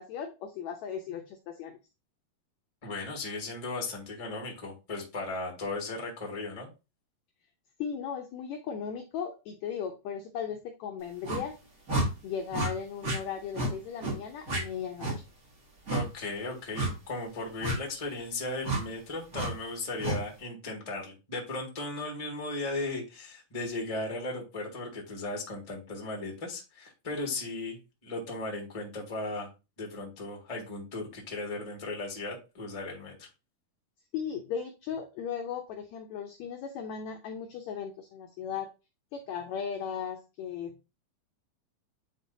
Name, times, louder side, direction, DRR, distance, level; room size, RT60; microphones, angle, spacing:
voice 1, 0.0-1.8 7.8-11.6 12.2-15.1 34.1-38.7 39.1-40.7, left 7 dB, 85° left, 5 dB, 1.6 m, -37 dB
voice 2, 2.8-6.7 15.9-29.5 29.8-33.3, left 2 dB, 20° left, 0 dB, 1.0 m, -36 dB
sound 1, 11.2-11.4 11.9-12.1 12.5-12.7 13.0-13.2 13.5-13.7 14.0-14.2 14.5-14.6 15.0-15.2 15.9-16.0 16.7-16.9 17.6-17.8 18.6-18.8 19.3-19.5 20.0-20.2, right 2 dB, 35° right, 1.6 m, -29 dB
9.7 x 3.7 x 2.7 m, 0.28 s
omnidirectional pair, 4.0 m